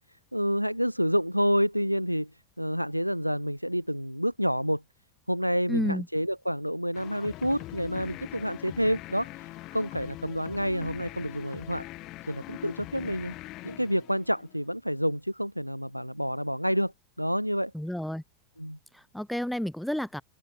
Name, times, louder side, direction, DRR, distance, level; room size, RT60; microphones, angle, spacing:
voice 1, 0.3-2.3 2.6-4.8 5.3-11.9 12.3-13.3 13.6-16.9 17.2-17.7 18.6-18.8, equal, 90° right, 0.5 m, -28 dB
voice 2, 5.7-6.1 17.7-18.2 18.9-20.2, equal, ahead, 1.4 m, -31 dB
sound 1, 6.9-14.7, left 18 dB, 40° left, 0.6 m, -42 dB
open air
figure-of-eight pair, 90°, 0 cm